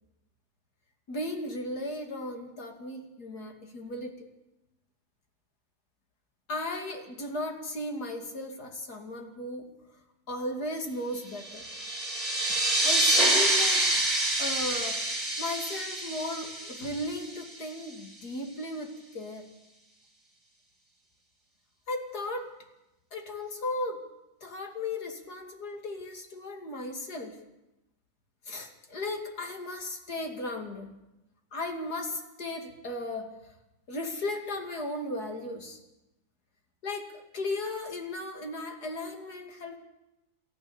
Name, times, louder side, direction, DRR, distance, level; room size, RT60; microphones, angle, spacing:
voice 1, 1.1-4.3 6.5-9.7 10.3-11.7 12.8-14.0 14.4-15.0 15.4-19.5 21.9-22.5 23.1-24.0 24.4-27.4 28.4-31.0 31.5-33.3 33.9-35.8 36.8-39.8, left 2 dB, 50° left, 3 dB, 2.9 m, -36 dB
sound 1, 11.4-17.6, right 1 dB, 15° right, 4.2 m, -27 dB
29.0 x 13.5 x 7.0 m, 0.93 s
omnidirectional pair, 2.3 m